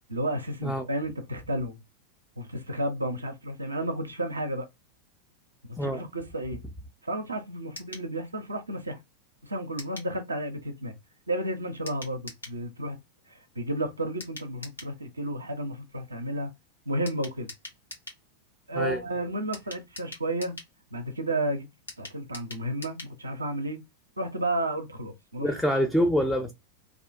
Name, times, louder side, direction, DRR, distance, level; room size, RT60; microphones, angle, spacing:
voice 1, 0.1-1.8 2.4-4.7 5.7-6.6 7.0-9.0 9.4-11.0 11.3-13.0 13.3-16.5 16.9-17.5 18.7-20.5 20.9-21.7 22.0-23.8 24.2-25.5, right 1 dB, 80° right, 0.4 m, -32 dB
sound 1, 7.7-8.1 9.8-10.1 11.9-12.6 14.2-14.9 17.1-18.2 19.5-20.7 21.9-23.2 23.5-23.6 23.8-23.9, left 2 dB, 75° left, 0.9 m, -43 dB
voice 2, 25.4-26.5, equal, ahead, 0.4 m, -25 dB
2.5 x 2.1 x 2.4 m
figure-of-eight pair, 90°, 0 cm